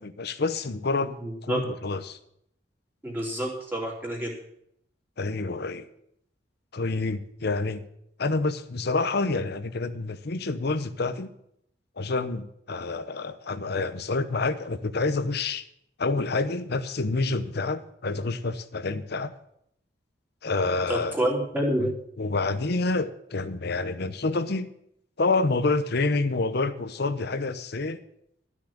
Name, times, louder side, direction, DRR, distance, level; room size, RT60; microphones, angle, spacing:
voice 1, 0.0-1.1 1.4-2.2 5.2-5.8 6.7-7.8 8.2-11.3 12.0-15.6 16.0-19.3 20.4-21.1 21.8-21.9 22.2-24.7 25.2-28.0, left 3 dB, 60° left, 12 dB, 0.8 m, -28 dB
voice 2, 1.2-1.6 3.0-4.3 20.9-21.9, right 1 dB, 10° right, -2 dB, 3.0 m, -28 dB
12.5 x 6.2 x 8.6 m, 0.75 s
head